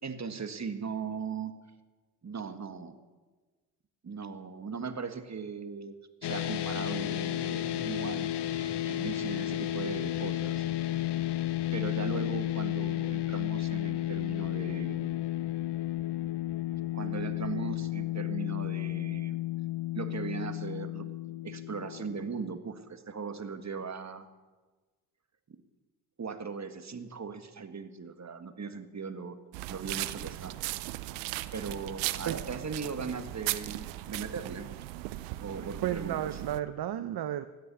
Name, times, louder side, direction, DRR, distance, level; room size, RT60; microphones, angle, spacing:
voice 1, 0.0-1.5 2.2-2.9 4.0-10.7 11.7-15.2 16.7-19.4 19.9-21.1 21.4-24.3 25.5-25.6 26.2-29.4 29.7-30.6 31.5-34.7 35.4-36.4, right 5 dB, 35° right, 9 dB, 1.7 m, -38 dB
sound 1, 6.2-22.6, left 14 dB, 60° left, 0.9 m, -33 dB
sound 2, 29.5-36.6, right 18 dB, 90° right, 0.6 m, -37 dB
voice 2, 35.8-37.5, right 11 dB, 55° right, 11 dB, 0.8 m, -32 dB
16.5 x 10.5 x 6.9 m, 1.3 s
hypercardioid pair, 45°, 47 cm